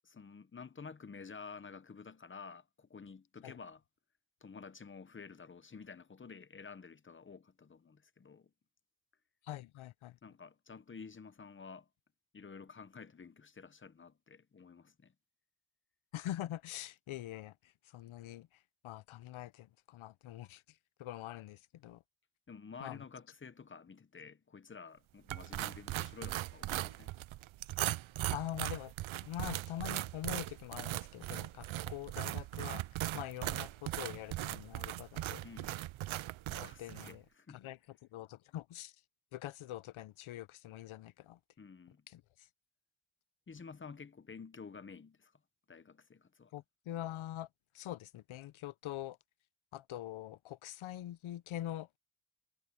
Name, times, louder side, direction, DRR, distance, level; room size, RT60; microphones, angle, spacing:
voice 1, 0.0-3.8 4.4-8.5 10.2-11.9 12.3-15.1 22.5-27.2 35.4-35.8 36.5-37.6 41.6-42.1 43.5-45.3 45.7-46.5, left 5 dB, 25° left, 0.8 m, -51 dB
voice 2, 9.4-10.2 16.1-18.5 18.8-20.6 21.0-22.0 22.8-23.0 28.3-28.9 29.2-32.8 33.1-35.4 36.6-37.2 37.5-38.9 39.3-41.4 42.1-42.5 46.5-47.5 47.7-49.2 49.7-52.0, left 13 dB, 80° left, 0.7 m, -44 dB
sound 1, 25.3-37.2, right 15 dB, 80° right, 0.6 m, -39 dB
wide cardioid pair, 145°, 48 cm